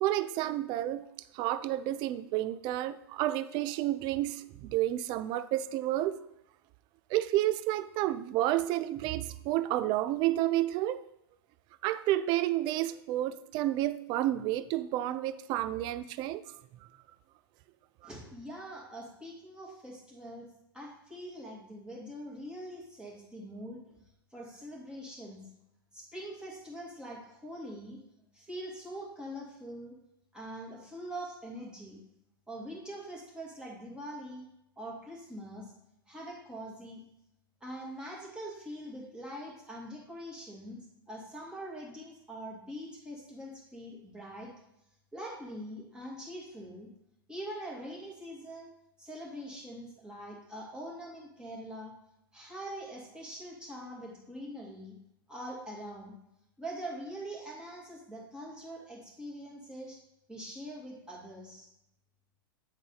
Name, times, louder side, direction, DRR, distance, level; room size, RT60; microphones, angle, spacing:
voice 1, 0.0-1.1 1.3-6.2 7.1-11.0 11.8-16.4, right 14 dB, 35° right, 0.4 m, -30 dB
voice 2, 18.0-20.5 20.7-23.8 24.3-25.4 25.9-28.0 28.3-29.9 30.3-32.0 32.5-34.4 34.8-35.7 36.1-37.0 37.6-44.5 45.1-46.9 47.3-48.7 49.0-51.9 52.3-55.0 55.3-56.1 56.6-60.0 60.3-61.7, equal, 5° right, 2.3 m, -43 dB
8.9 x 4.0 x 3.9 m
hypercardioid pair, 100°, 12 cm